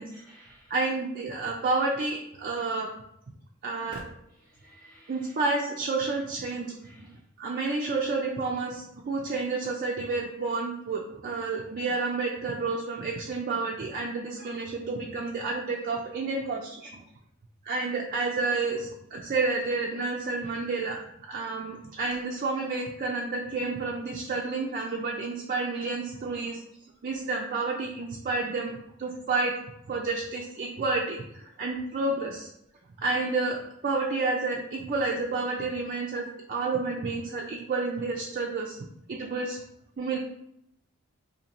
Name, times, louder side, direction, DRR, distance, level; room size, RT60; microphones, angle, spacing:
voice 1, 0.0-0.7 4.3-5.5 6.5-7.2, right 1 dB, 5° left, -9 dB, 0.7 m, -57 dB
voice 2, 0.7-2.9 3.6-4.0 5.1-6.7 7.4-17.0 17.6-26.6 27.0-29.5 29.9-32.5 33.0-33.6 33.8-38.8 39.1-39.6 40.0-40.2, right 3 dB, 40° right, -1 dB, 0.4 m, -30 dB
3.9 x 2.7 x 2.9 m, 0.77 s
head